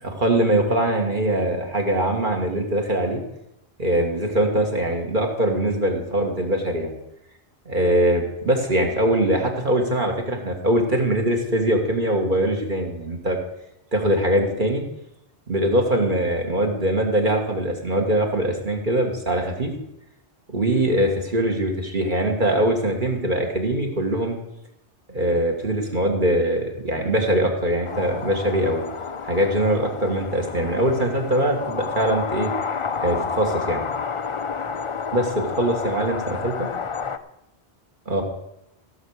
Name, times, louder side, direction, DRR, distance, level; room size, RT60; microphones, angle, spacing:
voice 1, 0.0-3.2 3.8-6.9 7.7-13.4 13.9-14.8 15.5-19.7 20.5-24.4 25.1-28.8 29.2-32.5 33.0-33.8 35.1-36.7 38.1-38.2, right 1 dB, 45° right, 1 dB, 2.1 m, -22 dB
sound 1, 27.8-37.2, left 6 dB, 40° left, 0.5 m, -30 dB
16.0 x 6.9 x 6.5 m, 0.84 s
omnidirectional pair, 1.1 m